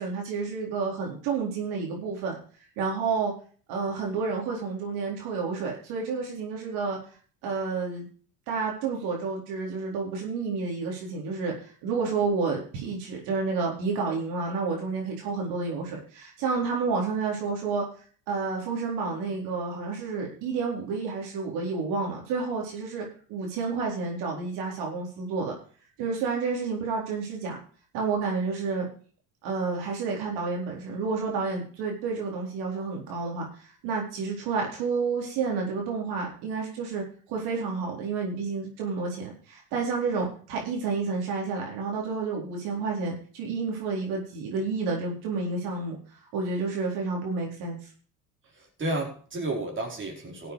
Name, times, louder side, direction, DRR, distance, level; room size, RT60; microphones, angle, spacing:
voice 1, 0.0-2.4 2.8-3.3 3.7-7.0 7.4-8.1 8.5-17.8 18.3-25.6 26.0-27.6 27.9-28.9 29.4-46.0 46.3-47.8, right 4 dB, 70° right, -1 dB, 4.2 m, -30 dB
voice 2, 48.6-50.5, right 2 dB, 30° right, -1 dB, 4.5 m, -32 dB
15.0 x 7.9 x 4.8 m, 0.43 s
supercardioid pair, 95°, 40 cm